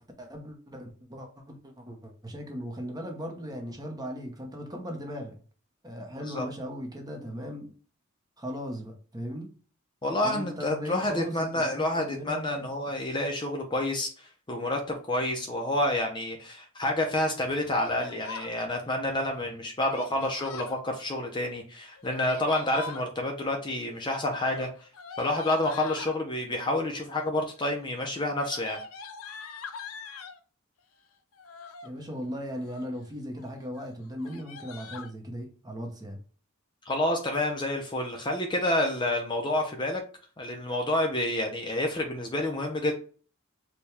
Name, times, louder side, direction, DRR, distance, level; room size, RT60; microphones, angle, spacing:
voice 1, 0.2-5.4 5.8-7.7 8.4-9.5 10.2-12.9 31.8-36.2, equal, 20° right, 3 dB, 0.8 m, -38 dB
voice 2, 10.0-24.9 25.2-28.8 36.9-40.0 40.4-42.9, left 1 dB, 20° left, 2 dB, 0.5 m, -29 dB
Yell, 17.7-18.5 19.9-20.8 21.9-23.1 24.4-26.2 27.0-27.4 27.7-30.4 31.3-31.9 32.4-33.0 33.4-33.5 33.7-33.9 34.2-35.1, left 5 dB, 75° left, 0.5 m, -43 dB
4.4 x 2.3 x 3.3 m, 0.39 s
head